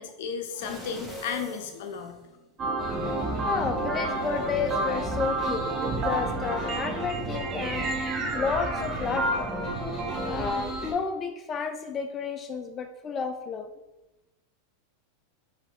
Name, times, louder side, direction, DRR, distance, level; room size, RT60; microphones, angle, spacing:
voice 1, 0.0-2.2, left 6 dB, 70° left, 5 dB, 0.7 m, -34 dB
sound 1, 0.6-2.7 3.2-3.3, equal, 5° left, 1.3 m, -42 dB
sound 2, 2.6-10.5, right 2 dB, 30° right, 0.7 m, -30 dB
sound 3, 2.8-10.9, right 1 dB, 15° right, 1.4 m, -37 dB
voice 2, 3.4-7.9 8.3-9.5 10.3-13.7, left 5 dB, 30° left, 7 dB, 0.3 m, -31 dB
5.6 x 3.0 x 3.0 m, 1.0 s
hypercardioid pair, 120°, 0 cm